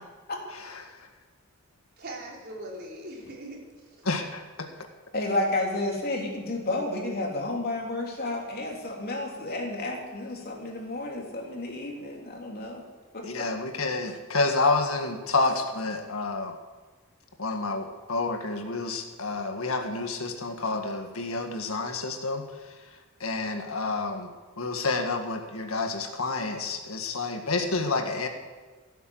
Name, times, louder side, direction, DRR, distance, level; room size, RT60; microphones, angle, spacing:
voice 1, 0.5-1.1 4.0-4.7 13.2-16.6 17.4-24.3 24.6-28.3, left 3 dB, 85° left, 5 dB, 1.8 m, -29 dB
voice 2, 2.0-4.1, right 1 dB, 50° right, -2 dB, 4.0 m, -41 dB
voice 3, 5.1-12.8 13.1-13.5, left 2 dB, 50° left, 0 dB, 3.2 m, -31 dB
16.5 x 9.3 x 7.9 m, 1.4 s
head